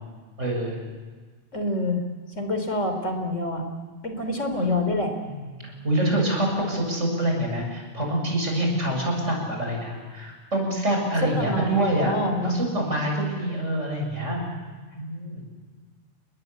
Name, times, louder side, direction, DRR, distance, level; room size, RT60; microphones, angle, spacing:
voice 1, 0.4-0.8 4.5-4.6 5.3-12.1 12.4-14.4 15.0-15.5, right 1 dB, 70° right, 1 dB, 7.7 m, -26 dB
voice 2, 1.5-2.0 2.4-3.6 4.0-5.1 11.3-12.6, left 1 dB, 75° left, 6 dB, 4.1 m, -26 dB
29.5 x 21.0 x 8.6 m, 1.5 s
omnidirectional pair, 1.3 m